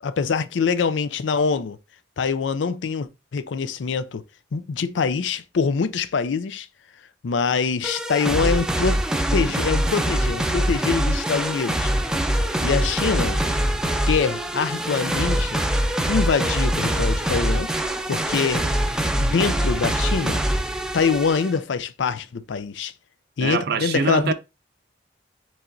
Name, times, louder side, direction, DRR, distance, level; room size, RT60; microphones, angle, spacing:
voice 1, 0.0-1.8 2.2-4.2 4.5-6.7 7.2-9.0 9.3-11.9 12.6-13.4 14.1-15.6 16.1-17.7 18.1-18.7 19.2-20.4 20.9-22.9 23.4-24.3, left 5 dB, 85° left, 0.4 m, -24 dB
sound 1, 7.8-21.6, right 1 dB, 5° right, 0.5 m, -23 dB
voice 2, 23.4-24.3, right 5 dB, 60° right, 0.6 m, -24 dB
4.7 x 4.2 x 2.6 m
head